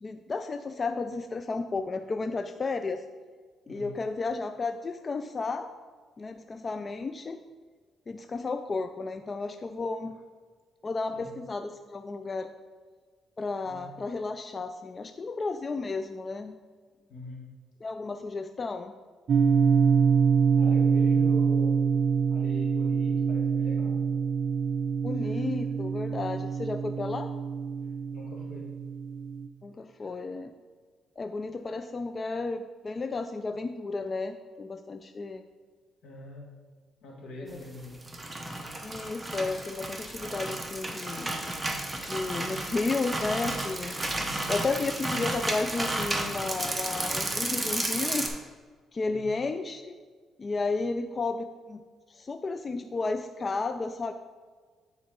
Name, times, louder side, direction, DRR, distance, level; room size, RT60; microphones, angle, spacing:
voice 1, 0.0-3.0 3.7-5.7 6.2-7.4 8.1-10.2 10.8-12.5 13.4-16.6 17.8-18.9 25.0-27.3 29.6-30.5 31.2-35.4 37.4-37.6 38.8-41.3 41.9-44.0 44.5-48.3 48.9-50.0 50.4-51.8 52.1-54.1, left 3 dB, 35° left, 8 dB, 0.3 m, -33 dB
voice 2, 17.1-17.5 20.5-24.1 28.1-28.8 36.0-36.5 37.0-38.0 44.1-44.5 49.1-49.3, left 1 dB, 80° left, -1 dB, 1.7 m, -43 dB
sound 1, 19.3-29.5, right 6 dB, 55° right, 0.5 m, -25 dB
sound 2, 37.8-48.3, right 1 dB, 15° right, 0.9 m, -32 dB
9.4 x 4.3 x 3.7 m, 1.5 s
cardioid pair, 90°, 0 cm